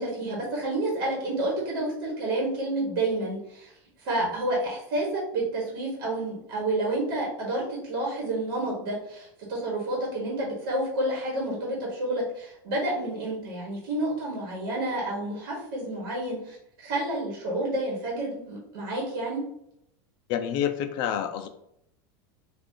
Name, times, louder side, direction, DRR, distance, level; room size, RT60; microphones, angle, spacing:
voice 1, 0.0-3.7 4.0-16.6 16.8-19.4, right 1 dB, 65° right, -4 dB, 1.4 m, -29 dB
voice 2, 20.3-21.5, left 9 dB, 40° left, 8 dB, 0.3 m, -28 dB
2.9 x 2.4 x 3.7 m, 0.76 s
supercardioid pair, 160°, 12 cm